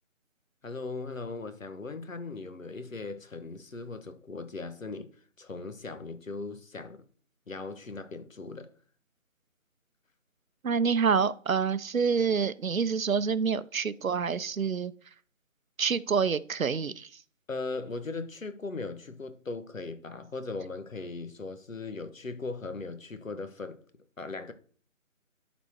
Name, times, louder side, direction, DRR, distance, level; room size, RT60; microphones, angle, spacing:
voice 1, 0.6-5.1 5.4-7.1 7.5-8.7 17.5-23.8 24.2-24.5, left 3 dB, 75° left, 1.4 m, -38 dB
voice 2, 10.6-14.9 15.8-17.1, right 6 dB, 80° right, 0.7 m, -27 dB
11.5 x 4.4 x 4.4 m
figure-of-eight pair, 165°, 40 cm